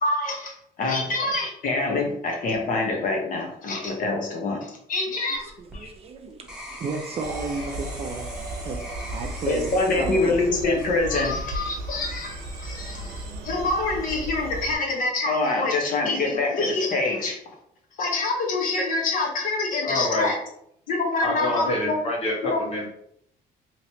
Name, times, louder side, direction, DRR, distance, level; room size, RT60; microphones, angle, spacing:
voice 1, 0.0-5.9 9.5-17.3 18.0-20.4 20.9-22.0 22.4-22.7, left 3 dB, 55° left, 1 dB, 0.9 m, -25 dB
sound 1, 5.3-11.5 12.1-12.5, equal, 5° right, 1.1 m, -42 dB
voice 2, 5.6-8.3 8.6-8.8 9.1-9.7 10.0-10.4, right 4 dB, 35° right, 4 dB, 0.4 m, -33 dB
sound 2, 7.2-14.7, right 1 dB, 90° right, 0.7 m, -35 dB
voice 3, 19.8-20.3 21.2-22.9, left 1 dB, 35° left, -3 dB, 1.4 m, -26 dB
3.1 x 2.9 x 2.9 m, 0.72 s
cardioid pair, 110°, 17 cm